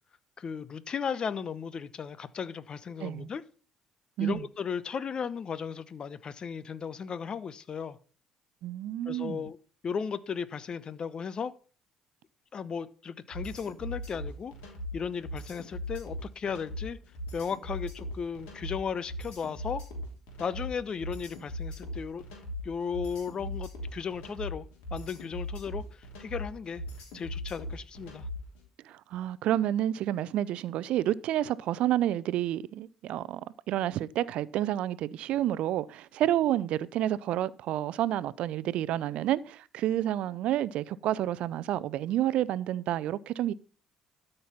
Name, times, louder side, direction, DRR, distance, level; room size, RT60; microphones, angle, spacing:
voice 1, 0.4-3.4 4.2-8.0 9.0-9.6 9.8-11.5 12.5-14.5 14.9-17.0 17.3-19.8 20.4-22.3 22.6-24.7 24.9-26.8 27.1-28.3, left 6 dB, 45° left, 0.9 m, -35 dB
voice 2, 8.6-9.4 28.8-33.4 33.7-43.5, right 12 dB, 65° right, 0.5 m, -29 dB
sound 1, 13.3-28.6, left 1 dB, 70° left, 3.2 m, -39 dB
12.5 x 5.5 x 5.9 m
hypercardioid pair, 55°, 2 cm